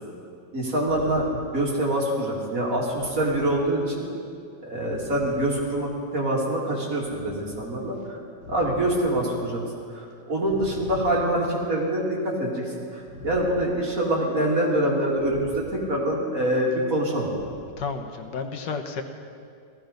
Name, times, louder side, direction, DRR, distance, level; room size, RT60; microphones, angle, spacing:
voice 1, 0.5-1.2 1.5-4.0 4.6-8.2 8.5-9.6 9.9-17.3, right 1 dB, 50° right, -3 dB, 2.8 m, -25 dB
voice 2, 17.8-19.0, left 5 dB, 85° left, 6 dB, 1.7 m, -32 dB
16.5 x 14.0 x 5.2 m, 2.3 s
omnidirectional pair, 1.9 m